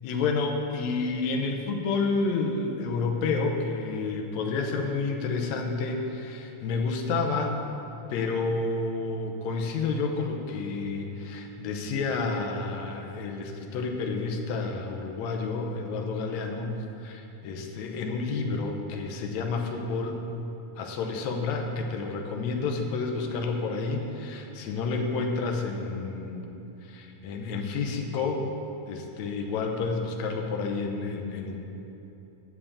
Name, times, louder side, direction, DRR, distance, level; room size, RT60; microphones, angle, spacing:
voice 1, 0.0-7.6 8.1-20.2 20.8-26.5 26.8-28.5 28.9-31.6, left 4 dB, 70° left, 3 dB, 2.0 m, -30 dB
7.6 x 7.3 x 8.3 m, 3.0 s
omnidirectional pair, 3.7 m